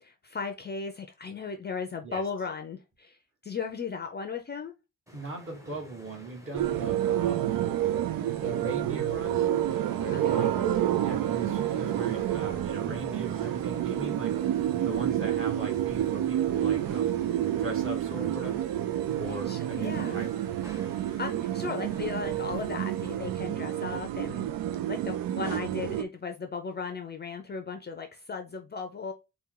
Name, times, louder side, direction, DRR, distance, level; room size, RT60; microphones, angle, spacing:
voice 1, 0.0-4.7 10.1-10.5 19.3-20.2 21.0-24.5 24.9-29.1, left 5 dB, 30° left, 0.5 m, -36 dB
sound 1, 5.1-23.3, equal, 10° right, 0.8 m, -52 dB
voice 2, 5.1-7.4 8.4-10.7 11.0-17.2 17.5-18.6 19.2-20.3, right 2 dB, 35° right, 1.6 m, -39 dB
sound 2, 6.5-26.0, right 11 dB, 80° right, 0.5 m, -29 dB
sound 3, 9.7-21.6, right 2 dB, 65° right, 1.6 m, -55 dB
4.3 x 2.3 x 3.7 m
wide cardioid pair, 155°, 34 cm